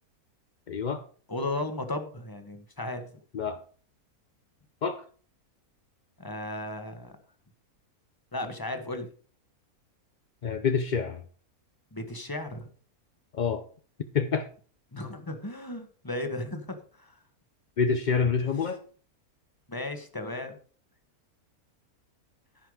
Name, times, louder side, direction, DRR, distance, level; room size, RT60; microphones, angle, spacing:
voice 1, 0.7-1.0 3.3-3.6 4.8-5.0 10.4-11.2 13.3-13.6 14.1-14.5 17.8-18.9, left 6 dB, 50° left, 8 dB, 0.5 m, -27 dB
voice 2, 1.3-3.0 6.2-7.1 8.3-9.1 11.9-12.7 14.9-17.1 19.7-20.6, left 2 dB, 15° left, 6 dB, 1.5 m, -35 dB
14.5 x 5.8 x 4.9 m, 0.43 s
omnidirectional pair, 1.6 m